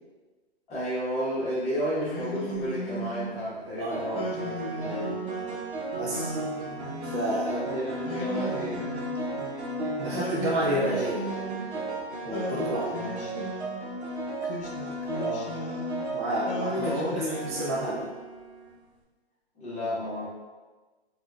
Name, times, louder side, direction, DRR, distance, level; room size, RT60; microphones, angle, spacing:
voice 1, 0.7-5.2 7.5-8.8 12.9-13.5 15.1-15.5 16.7-17.4 17.9-18.0 19.5-20.2, equal, 20° left, -9 dB, 1.2 m, -32 dB
Singing, 2.0-3.5 4.1-5.5 6.1-7.4 8.0-9.6 10.1-11.9 12.3-13.9 14.4-16.1 16.5-18.1, equal, 55° left, 0.7 m, -37 dB
sound 1, 2.3-2.7 3.9-18.7, right 2 dB, 90° right, 0.9 m, -35 dB
voice 2, 5.9-6.3 7.0-7.5 10.0-11.2 12.2-13.0 16.1-18.1, right 1 dB, 25° right, -7 dB, 0.4 m, -30 dB
4.2 x 2.5 x 2.3 m, 1.3 s
hypercardioid pair, 150°, 33 cm